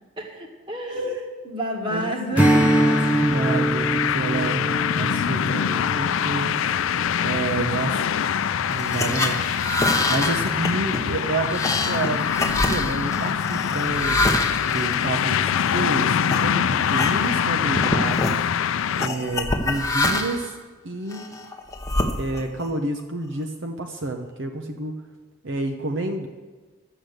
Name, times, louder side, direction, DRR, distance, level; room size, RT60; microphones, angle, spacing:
voice 1, 0.2-2.9, equal, 25° right, 1 dB, 1.7 m, -29 dB
sound 1, 2.4-19.1, left 8 dB, 75° left, 0.4 m, -24 dB
Strum, 2.4-7.1, right 1 dB, 10° right, 0.7 m, -23 dB
voice 2, 2.5-4.7 5.0-6.6 7.2-8.2 8.7-9.4 9.8-14.4 14.7-18.5 18.9-20.5 20.8-21.3 22.2-25.0 25.4-26.3, right 2 dB, 65° right, 4 dB, 0.9 m, -29 dB
sound 2, 8.7-15.8 16.3-16.4 16.8-17.5 17.7-18.4 19.0-20.5 21.1-22.6, left 2 dB, 15° left, 0.9 m, -26 dB
12.0 x 8.1 x 7.9 m, 1.3 s
head